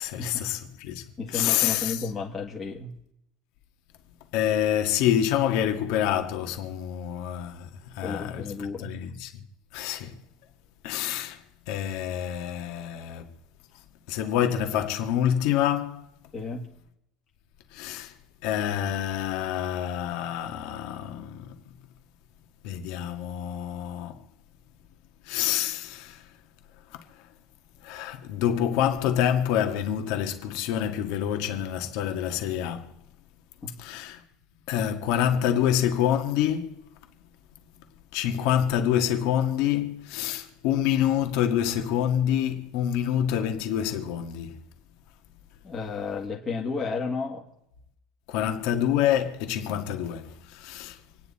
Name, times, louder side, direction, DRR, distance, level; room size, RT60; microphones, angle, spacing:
voice 1, 0.0-1.0 1.3-2.0 4.3-9.3 9.7-10.2 10.8-11.4 11.7-13.3 14.1-16.0 17.7-18.1 18.4-21.5 22.6-24.2 25.3-26.2 27.8-32.9 33.8-34.2 34.7-36.8 38.1-44.6 48.3-51.0, left 10 dB, 55° left, 1.8 m, -27 dB
voice 2, 1.2-2.9 8.0-8.9 16.3-16.7 33.6-33.7 45.6-47.4 48.4-48.5, left 4 dB, 20° left, 1.7 m, -32 dB
27.0 x 9.8 x 4.2 m
cardioid pair, 170°, 0 cm